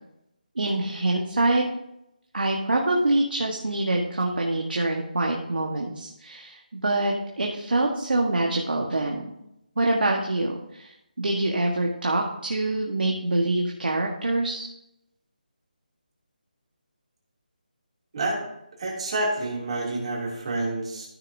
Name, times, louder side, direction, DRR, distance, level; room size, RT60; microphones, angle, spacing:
voice 1, 0.5-1.6 2.3-9.3 9.8-14.7, right 2 dB, 85° right, 0 dB, 1.4 m, -25 dB
voice 2, 18.8-21.1, right 2 dB, 40° right, -3 dB, 2.7 m, -28 dB
13.5 x 6.3 x 2.7 m, 0.82 s
figure-of-eight pair, 170°, 5 cm